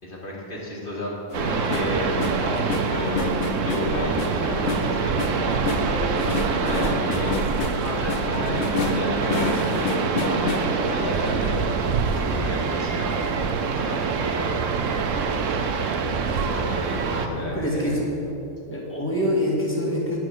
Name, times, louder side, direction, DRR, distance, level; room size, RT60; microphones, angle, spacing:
voice 1, 0.0-2.4 2.9-5.4 6.0-7.4 7.9-12.1 12.4-15.2 15.5-15.9 16.2-18.0, left 1 dB, 40° left, -5 dB, 2.4 m, -33 dB
sound 1, 1.3-11.7 12.1-14.5 15.1-15.2 15.4-15.7 16.3-17.2 17.5-17.6, left 5 dB, 65° left, 1.1 m, -31 dB
sound 2, 1.3-17.3, right 5 dB, 75° right, 1.0 m, -25 dB
voice 2, 17.1-18.1 18.7-20.2, equal, 10° left, -5 dB, 2.1 m, -25 dB
9.1 x 6.4 x 7.8 m, 2.9 s
omnidirectional pair, 1.4 m